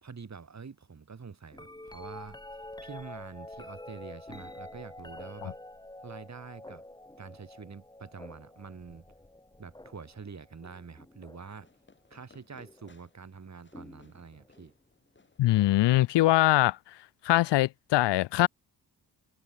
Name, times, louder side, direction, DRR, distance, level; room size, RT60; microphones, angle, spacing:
voice 1, 0.0-2.4 2.8-5.6 6.0-6.8 7.2-9.1 9.6-11.7 12.1-14.7, right 5 dB, 40° right, 4.6 m, -46 dB
sound 1, 1.5-11.6 12.6-13.0 13.7-14.7 16.5-16.6, left 1 dB, 10° left, 4.3 m, -47 dB
Fireworks, 11.6-17.1, left 3 dB, 25° left, 5.0 m, -64 dB
voice 2, 15.4-16.8 17.2-18.5, left 16 dB, 80° left, 0.5 m, -23 dB
wide cardioid pair, 115°, 41 cm